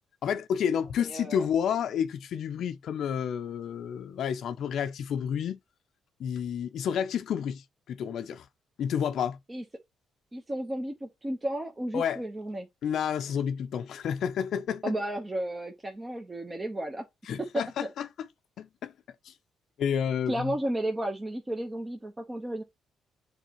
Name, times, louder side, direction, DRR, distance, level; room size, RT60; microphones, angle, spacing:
voice 1, 0.2-5.6 6.2-8.5 8.8-9.4 11.9-12.2 12.8-14.8 17.2-18.3 18.6-18.9 19.2-19.3 19.8-20.5, left 8 dB, 70° left, 0.5 m, -30 dB
voice 2, 1.0-1.5 9.5-9.6 10.3-12.7 14.8-17.0 17.4-17.9 20.3-22.6, right 1 dB, 20° right, 1.1 m, -33 dB
8.1 x 4.0 x 3.0 m
cardioid pair, 90°, 0 cm